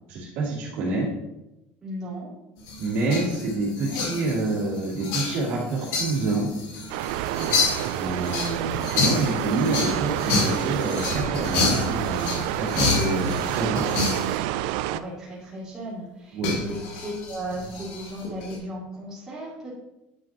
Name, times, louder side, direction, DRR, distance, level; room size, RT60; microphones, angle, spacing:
voice 1, 0.1-1.1 2.8-6.5 7.9-13.8 16.3-16.6, right 2 dB, 60° right, -6 dB, 2.8 m, -27 dB
voice 2, 1.8-2.3 7.4-7.7 14.9-19.7, right 1 dB, 15° right, -9 dB, 3.2 m, -36 dB
sound 1, 2.6-14.4 16.4-18.6, left 4 dB, 70° left, 2.1 m, -29 dB
sound 2, 6.9-15.0, right 14 dB, 85° right, 0.3 m, -28 dB
10.0 x 6.2 x 3.0 m, 0.94 s
cardioid pair, 165°, 4 cm